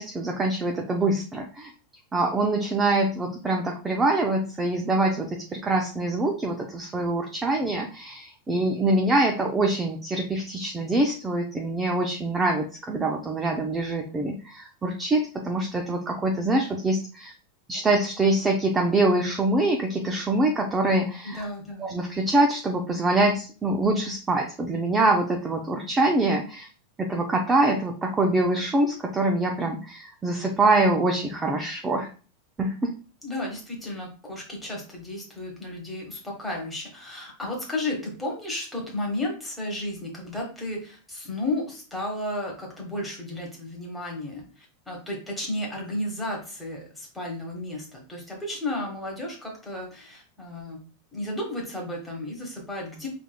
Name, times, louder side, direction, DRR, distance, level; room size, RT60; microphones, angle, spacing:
voice 1, 0.0-1.7 2.1-17.3 17.7-21.4 21.8-26.7 27.0-32.1 32.6-32.9, right 2 dB, 10° right, 2 dB, 0.4 m, -24 dB
voice 2, 21.2-21.9 33.2-50.8 51.1-53.1, left 1 dB, 5° left, -2 dB, 1.1 m, -33 dB
4.9 x 3.3 x 2.2 m, 0.37 s
supercardioid pair, 175°, 0 cm